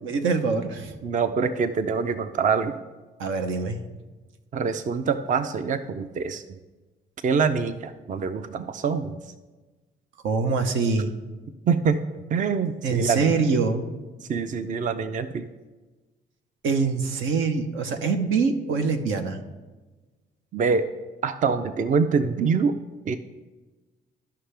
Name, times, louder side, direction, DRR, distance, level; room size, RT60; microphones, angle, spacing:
voice 1, 0.0-0.9 3.2-3.8 10.2-11.1 12.8-13.8 16.6-19.4, right 4 dB, 85° right, 7 dB, 0.9 m, -24 dB
voice 2, 1.0-2.8 4.5-6.6 7.2-9.2 11.7-12.0 12.3-13.3 14.3-15.5 20.5-20.9 21.2-22.8 23.0-23.2, right 5 dB, 40° right, 11 dB, 0.5 m, -25 dB
13.0 x 5.7 x 3.3 m, 1.2 s
cardioid pair, 90°, 20 cm